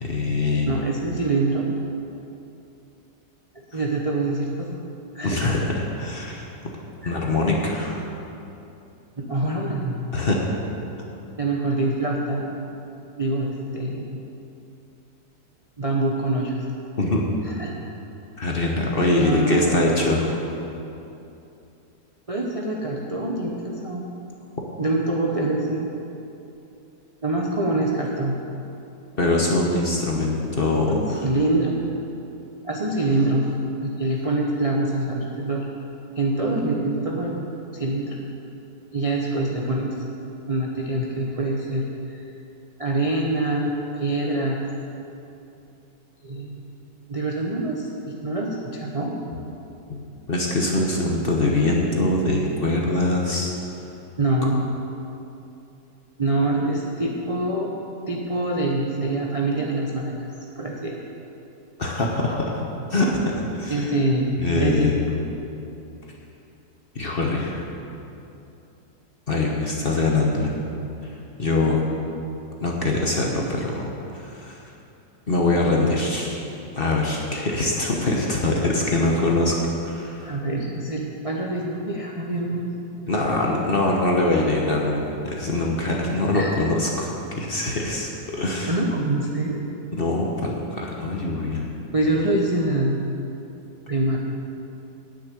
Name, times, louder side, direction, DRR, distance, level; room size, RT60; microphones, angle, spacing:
voice 1, 0.0-0.7 5.2-5.7 6.0-6.5 7.0-8.0 10.1-10.4 17.0-17.2 18.4-20.4 29.2-31.0 49.9-50.0 50.3-53.5 61.8-63.9 64.4-65.2 66.9-67.7 69.3-70.5 71.0-71.1 71.4-71.8 72.6-74.6 75.3-76.4 76.8-79.5 79.8-80.4 83.1-88.8 90.0-91.7, left 2 dB, 40° left, -1 dB, 1.0 m, -23 dB
voice 2, 0.7-1.7 3.5-4.8 5.1-5.4 7.0-7.2 9.2-10.0 11.4-12.5 13.2-14.2 15.8-16.6 17.4-17.9 19.2-19.8 22.3-24.1 24.8-25.9 27.2-28.4 30.9-31.7 32.6-35.6 36.2-38.2 38.9-39.9 40.5-41.8 42.1-42.3 42.8-44.6 46.2-46.6 47.1-49.1 54.2-54.6 56.2-57.7 58.1-60.1 60.6-61.0 63.7-64.9 80.2-82.7 86.3-86.6 88.7-89.6 91.9-93.1 93.9-94.2, right 2 dB, 35° right, -2 dB, 0.6 m, -25 dB
8.8 x 6.7 x 8.7 m, 2.8 s
omnidirectional pair, 1.9 m